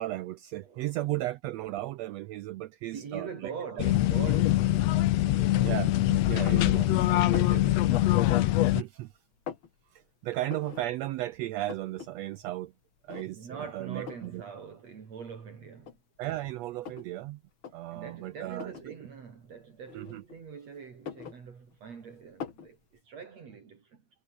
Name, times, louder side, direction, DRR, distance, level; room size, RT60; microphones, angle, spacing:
voice 1, 0.0-3.5 5.6-7.5 8.7-9.1 9.9-12.7 13.0-14.4 16.2-17.4 17.7-18.7 19.9-20.2, right 15 dB, 80° right, 1.5 m, -35 dB
voice 2, 0.6-0.9 2.9-5.9 7.0-8.2 13.3-16.0 17.9-24.0, right 6 dB, 55° right, 4.2 m, -43 dB
sound 1, 3.8-8.8, left 15 dB, 75° left, 1.7 m, -23 dB
sound 2, 7.3-7.6 8.2-8.8 9.1-9.7 10.5-10.9 11.2-11.3 11.5-12.1 12.4-12.5 13.1-13.5 14.1-14.3 15.2-15.3 15.8-17.1 17.5-17.7 18.5-18.9 19.9-20.5 20.9-21.9 22.4-22.7, left 7 dB, 45° left, 2.5 m, -42 dB
omnidirectional pair, 3.6 m